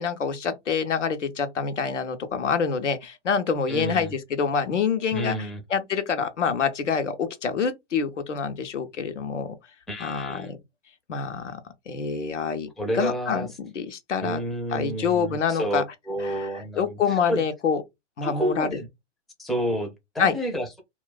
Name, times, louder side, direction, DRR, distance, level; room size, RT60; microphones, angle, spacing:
voice 1, 0.0-5.4 5.7-9.6 10.0-10.6 11.1-11.6 11.9-14.4 14.7-15.8 16.2-16.5 16.8-17.8 18.2-18.7 20.2-20.3, left 6 dB, 90° left, 0.7 m, -26 dB
voice 2, 3.7-4.1 5.1-5.6 9.9-10.5 12.8-13.5 14.2-17.4 18.2-18.9 19.4-20.8, right 1 dB, ahead, 0.4 m, -30 dB
2.4 x 2.2 x 3.8 m
hypercardioid pair, 115°, 35 cm